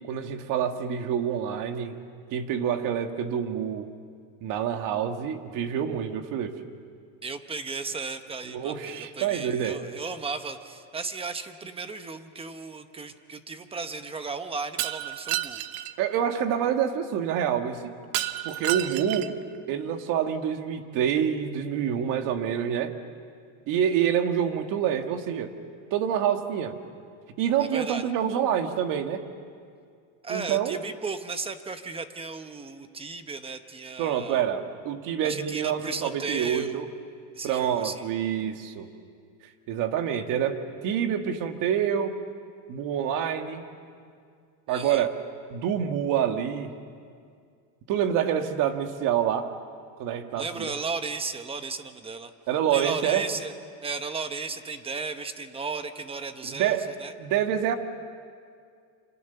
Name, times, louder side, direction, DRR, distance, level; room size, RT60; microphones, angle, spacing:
voice 1, 0.1-2.0 2.3-3.9 4.4-6.5 8.5-9.8 16.0-18.0 18.4-19.3 19.7-22.9 23.7-25.5 25.9-26.7 27.4-29.2 30.3-30.8 34.0-36.9 37.4-38.9 39.7-42.1 42.7-43.6 44.7-45.1 45.5-46.7 47.9-49.5 50.0-50.7 52.5-53.2 56.4-56.9 57.2-57.7, right 9 dB, 50° right, 6 dB, 1.8 m, -27 dB
voice 2, 7.2-15.6 23.8-24.0 27.6-28.1 30.2-34.4 35.2-36.8 37.3-38.0 44.7-45.1 50.4-52.3 52.7-53.5 53.8-57.1, right 4 dB, 15° right, 9 dB, 0.9 m, -35 dB
Shatter, 14.8-15.9 18.1-19.4, right 15 dB, 90° right, 1.1 m, -30 dB
27.5 x 26.5 x 6.9 m, 2.2 s
cardioid pair, 160°, 41 cm